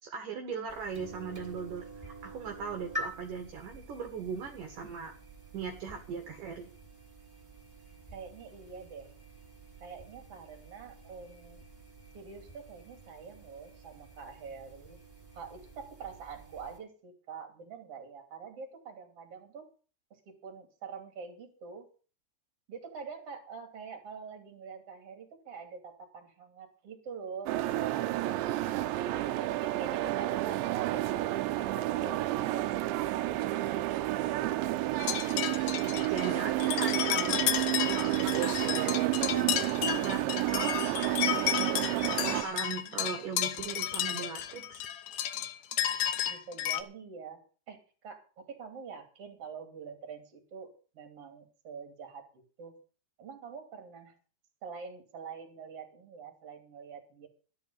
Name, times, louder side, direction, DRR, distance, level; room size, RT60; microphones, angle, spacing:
voice 1, 0.0-5.1 5.5-6.7 35.7-37.4 37.8-40.2 40.5-44.9, right 5 dB, 60° right, 4 dB, 2.7 m, -39 dB
sound 1, 0.7-16.8, right 1 dB, 5° right, 2.6 m, -48 dB
voice 2, 8.1-9.1 9.8-11.6 12.1-15.0 15.3-19.7 20.1-21.9 22.7-34.1 46.3-47.4 47.7-52.3 52.6-52.8 53.2-54.1 54.6-57.3, right 5 dB, 40° right, 6 dB, 3.1 m, -45 dB
sound 2, 27.5-42.4, right 16 dB, 85° right, 3.1 m, -30 dB
sound 3, 35.0-46.8, left 11 dB, 70° left, 2.5 m, -32 dB
13.0 x 10.5 x 5.6 m, 0.38 s
omnidirectional pair, 5.2 m